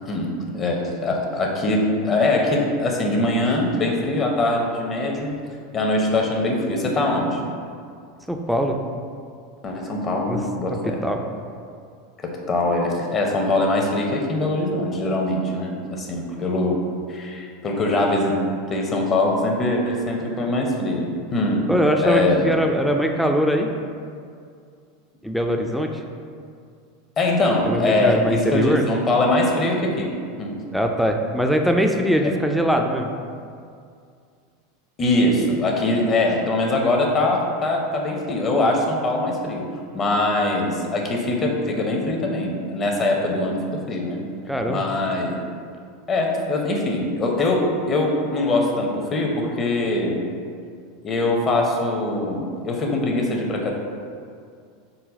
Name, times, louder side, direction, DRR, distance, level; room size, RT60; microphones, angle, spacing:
voice 1, 0.0-5.3 5.7-7.4 9.6-11.0 12.2-16.8 17.1-18.4 18.7-21.7 22.0-22.5 27.2-30.1 30.4-30.6 32.2-32.4 35.0-39.7 39.9-44.2 44.7-45.4 46.1-50.2 51.0-53.7, left 2 dB, 35° left, 0 dB, 0.6 m, -22 dB
voice 2, 8.3-8.8 10.3-10.4 10.9-11.2 21.7-23.7 25.2-26.0 27.7-28.9 30.7-33.1 44.5-44.8, equal, ahead, 3 dB, 0.3 m, -21 dB
3.9 x 2.1 x 4.0 m, 2.3 s
hypercardioid pair, 90°, 0 cm